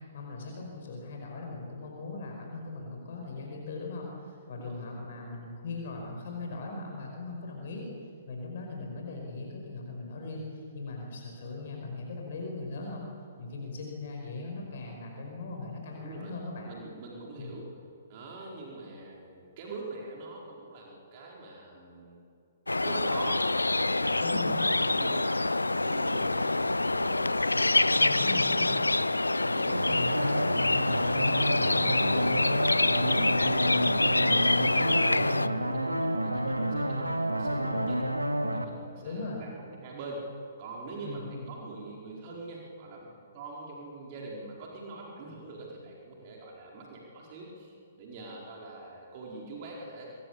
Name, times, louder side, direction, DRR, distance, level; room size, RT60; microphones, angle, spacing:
voice 1, 0.1-7.9 8.3-13.1 13.4-16.7 17.4-17.5 24.2-24.7 27.9-28.8 31.1-31.9 39.0-39.4 41.0-41.5, left 3 dB, 50° left, 1 dB, 5.2 m, -39 dB
voice 2, 4.5-4.8 15.9-16.4 16.7-17.6 18.1-22.2 22.8-23.5 23.8-24.4 24.7-28.1 28.5-28.6 28.9-29.0 29.4-30.4 30.9-33.6 33.9-38.0 38.5-40.2 40.6-43.1 43.3-50.1, right 3 dB, 35° right, -2 dB, 4.9 m, -44 dB
sound 1, 22.7-35.5, left 2 dB, 80° left, 0.6 m, -26 dB
sound 2, 29.7-38.6, right 1 dB, 85° right, 1.9 m, -30 dB
26.0 x 22.0 x 8.5 m, 2.6 s
figure-of-eight pair, 120°, 0 cm